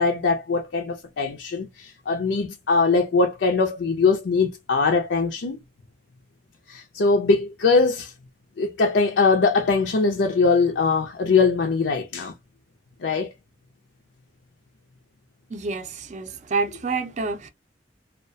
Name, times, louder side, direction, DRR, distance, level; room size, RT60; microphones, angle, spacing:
voice 1, 0.0-5.6 6.7-8.1 8.6-12.3 13.0-13.3, left 4 dB, 75° left, 0.4 m, -21 dB
voice 2, 15.5-17.5, right 4 dB, 40° right, 0.4 m, -28 dB
2.3 x 2.1 x 2.5 m
head